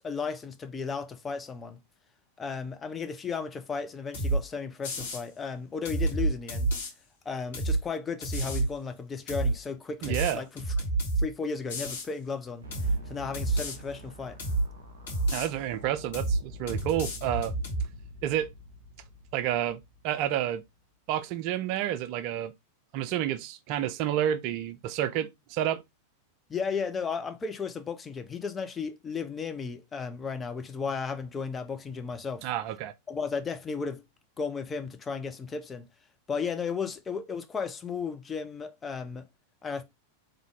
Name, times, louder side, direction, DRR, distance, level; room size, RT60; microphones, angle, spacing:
voice 1, 0.0-1.8 2.4-6.7 7.3-10.6 11.2-12.6 13.1-14.4 26.5-32.5 33.1-34.0 34.4-35.9 36.3-39.3 39.6-39.8, left 5 dB, 20° left, 0.6 m, -34 dB
sound 1, 4.1-4.4 4.8-5.2 5.8-6.9 7.5-7.8 8.2-8.7 9.3-9.5 10.0-11.3 11.7-12.1 12.7-13.0 13.3-13.8 14.4-14.7 15.1-15.5 16.1-16.4 16.7-17.8, right 2 dB, 55° left, 2.4 m, -29 dB
voice 2, 10.0-10.4 15.3-17.5 18.2-18.5 19.3-20.6 21.1-22.5 22.9-25.8 32.4-32.9, right 11 dB, 45° right, 0.4 m, -30 dB
sound 2, 12.6-20.7, equal, 65° right, 1.3 m, -46 dB
3.6 x 3.6 x 3.5 m
figure-of-eight pair, 90°, 0 cm